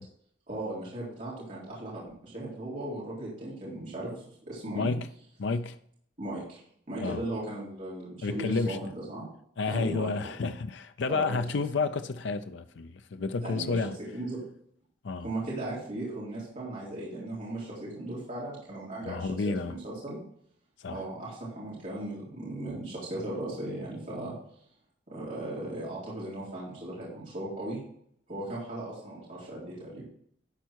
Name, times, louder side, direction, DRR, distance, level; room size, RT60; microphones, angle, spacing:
voice 1, 0.5-4.9 6.2-6.6 6.9-9.2 9.7-10.3 11.1-11.4 13.4-13.8 14.1-14.4 15.2-20.2 20.9-24.3 25.1-27.8 28.3-30.0, right 1 dB, 40° right, 3.9 m, -37 dB
voice 2, 4.7-5.1 5.4-5.8 7.0-7.2 8.2-8.8 9.6-14.0 15.0-15.3 19.0-19.7 20.8-21.0, left 4 dB, 70° left, 0.5 m, -30 dB
12.5 x 4.6 x 4.5 m
head